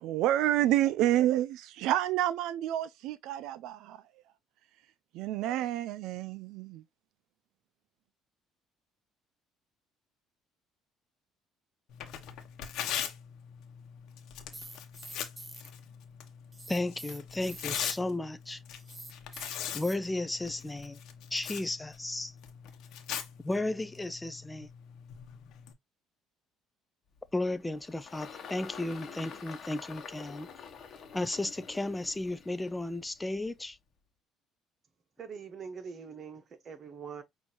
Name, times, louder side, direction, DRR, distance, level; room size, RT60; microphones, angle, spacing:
voice 1, 0.0-4.0 5.1-6.8, right 13 dB, 75° right, 0.3 m, -29 dB
Tearing, 11.9-25.7, left 9 dB, 70° left, 1.0 m, -41 dB
sound 1, 14.5-15.7 16.5-18.0 18.7-20.0, right 2 dB, 15° right, 1.1 m, -47 dB
voice 2, 16.7-18.6 19.7-21.0 21.3-22.3 23.4-24.7 27.3-30.5 31.1-33.8, left 2 dB, 10° left, 0.4 m, -34 dB
Engine, 27.1-33.7, left 6 dB, 45° left, 1.1 m, -48 dB
voice 3, 35.2-37.2, right 6 dB, 45° right, 1.1 m, -43 dB
6.1 x 2.7 x 2.8 m
cardioid pair, 110°, 0 cm